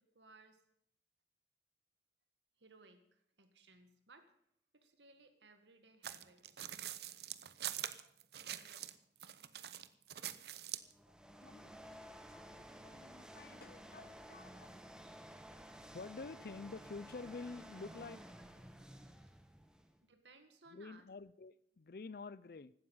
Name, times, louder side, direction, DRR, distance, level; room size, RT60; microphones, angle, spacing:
voice 1, 0.1-0.6 2.6-4.3 4.7-6.7 11.1-11.2 20.1-21.1, right 3 dB, 90° right, 1.9 m, -63 dB
sound 1, 6.0-8.9 9.2-10.9, right 11 dB, 65° right, 0.8 m, -44 dB
sound 2, 10.8-20.0, equal, 5° right, 1.1 m, -54 dB
voice 2, 12.1-14.8 15.3-18.2 20.7-22.7, left 4 dB, 55° left, 0.5 m, -50 dB
16.5 x 12.5 x 5.6 m
head